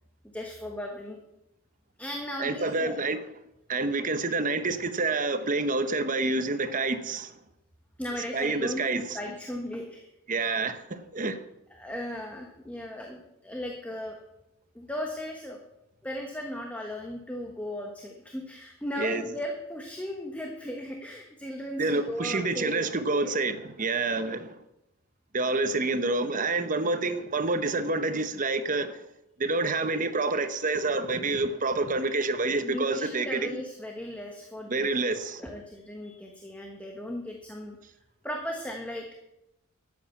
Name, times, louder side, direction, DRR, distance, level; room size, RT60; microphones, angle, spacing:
voice 1, 0.3-1.2 2.0-3.0 8.0-10.1 11.7-14.2 14.7-15.6 16.0-23.4 32.6-34.9 35.2-37.8 38.2-39.0, left 1 dB, 5° left, 1.3 m, -37 dB
voice 2, 2.4-3.2 3.7-7.3 8.3-9.3 10.3-11.4 19.0-19.3 21.8-24.5 25.3-29.0 29.4-33.6 34.7-35.4, right 3 dB, 40° right, 1.0 m, -28 dB
12.5 x 8.6 x 7.1 m
head